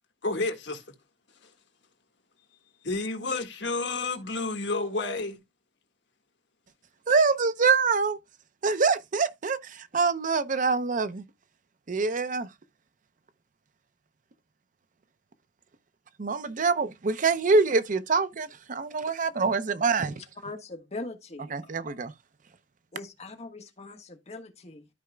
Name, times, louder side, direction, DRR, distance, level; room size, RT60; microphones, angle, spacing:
voice 1, 0.2-0.8 2.8-5.4, left 3 dB, 70° left, 1.8 m, -30 dB
voice 2, 7.1-8.2 8.6-11.2 11.9-12.5 16.2-20.1 21.5-22.1, right 4 dB, 45° right, 0.6 m, -25 dB
voice 3, 20.1-21.7 22.9-24.9, left 2 dB, 40° left, 1.5 m, -41 dB
13.5 x 4.8 x 2.3 m
head